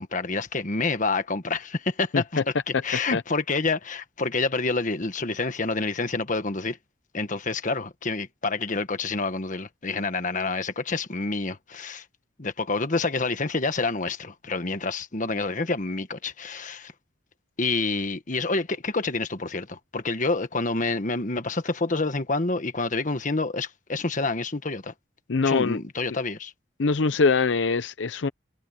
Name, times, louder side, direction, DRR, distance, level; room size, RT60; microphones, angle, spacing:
voice 1, 0.0-2.4 2.8-6.8 7.1-12.0 12.4-16.9 17.6-24.9 25.4-26.5, left 3 dB, 45° left, 1.4 m, -28 dB
voice 2, 2.1-2.4 3.1-3.2 25.3-25.8 26.8-28.3, left 4 dB, 80° left, 0.6 m, -23 dB
head